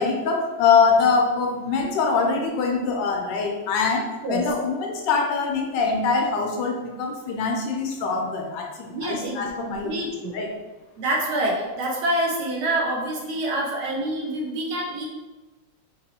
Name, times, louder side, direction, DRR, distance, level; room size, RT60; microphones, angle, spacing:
voice 1, 0.0-9.9 10.3-10.5, left 5 dB, 75° left, 1 dB, 1.2 m, -23 dB
voice 2, 8.9-10.3 11.0-15.0, right 1 dB, 65° right, -2 dB, 1.1 m, -26 dB
4.0 x 2.7 x 2.7 m, 1.1 s
omnidirectional pair, 2.2 m